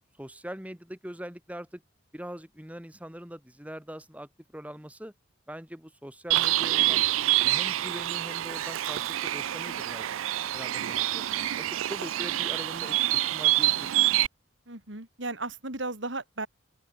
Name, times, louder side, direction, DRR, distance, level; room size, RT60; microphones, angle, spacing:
voice 1, 0.2-1.8 2.1-5.1 5.5-7.0 7.4-10.1 10.5-11.2 11.6-14.0, equal, 5° right, 2.1 m, -42 dB
Bird, 6.3-14.3, right 15 dB, 80° right, 0.4 m, -27 dB
voice 2, 14.7-16.5, right 2 dB, 65° right, 3.9 m, -36 dB
open air
head